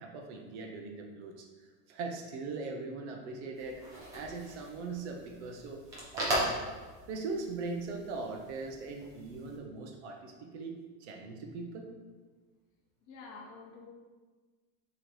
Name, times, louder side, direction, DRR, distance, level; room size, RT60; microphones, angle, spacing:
voice 1, 0.0-5.8 6.1-6.5 7.1-11.9, right 3 dB, 50° right, 3 dB, 0.8 m, -40 dB
sound 1, 3.5-9.6, right 1 dB, 10° right, 0.4 m, -39 dB
voice 2, 13.1-13.9, left 4 dB, 40° left, -1 dB, 1.1 m, -48 dB
6.4 x 3.2 x 4.8 m, 1.4 s
supercardioid pair, 180°, 44 cm